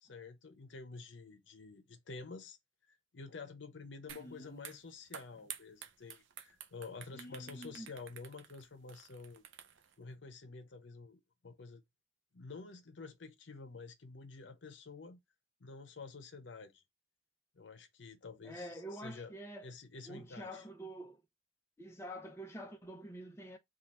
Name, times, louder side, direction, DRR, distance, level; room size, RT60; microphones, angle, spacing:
voice 1, 0.0-2.6 2.9-9.4 10.0-11.8 12.3-15.2 15.6-16.8 17.5-19.4 19.6-20.7, left 4 dB, 80° left, 0.7 m, -50 dB
voice 2, 4.1-4.7 7.1-7.9 18.4-19.7 20.1-21.2 21.8-23.6, equal, 15° left, 0.7 m, -47 dB
sound 1, 4.1-4.3 4.6-9.9, right 9 dB, 85° right, 0.6 m, -51 dB
3.8 x 2.4 x 4.2 m
head